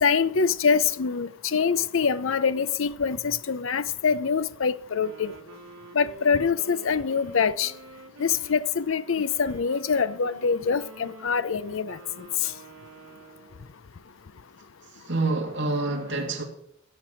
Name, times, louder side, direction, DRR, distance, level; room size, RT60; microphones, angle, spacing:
voice 1, 0.0-5.3 5.9-7.7 8.2-12.0, left 6 dB, 70° left, 0.6 m, -24 dB
Wind instrument woodwind instrument, 4.8-13.8, right 2 dB, 85° right, 2.1 m, -47 dB
voice 2, 14.9-16.4, right 2 dB, 60° right, 2.6 m, -27 dB
16.0 x 6.8 x 6.2 m
head